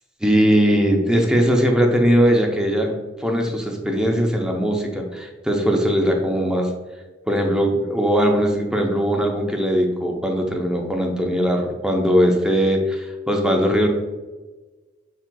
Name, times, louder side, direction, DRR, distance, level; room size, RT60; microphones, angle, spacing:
voice 1, 0.2-6.7 7.3-13.9, equal, 5° right, 1 dB, 0.6 m, -20 dB
5.9 x 3.6 x 2.2 m, 1.2 s
head